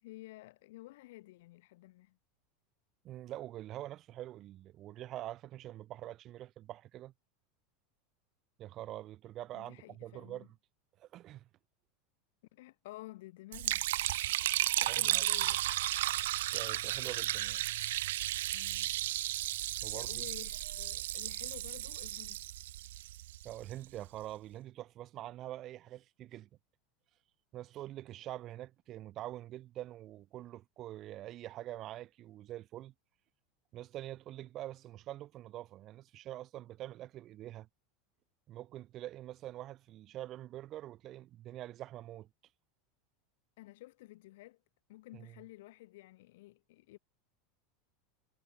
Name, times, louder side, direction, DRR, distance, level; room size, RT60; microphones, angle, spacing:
voice 1, 0.0-2.2 9.5-10.5 12.5-13.9 14.8-15.6 18.5-18.9 19.9-22.4 43.6-44.6 44.9-47.0, left 18 dB, 75° left, 2.9 m, -52 dB
voice 2, 3.0-7.1 8.6-10.6 11.0-11.5 14.9-15.2 16.5-17.6 19.8-20.2 23.4-26.5 27.5-32.9 33.7-37.7 38.5-42.3 45.1-45.4, right 14 dB, 45° right, 7.7 m, -45 dB
Liquid, 13.5-23.7, right 15 dB, 80° right, 0.9 m, -34 dB
supercardioid pair, 115°, 0 cm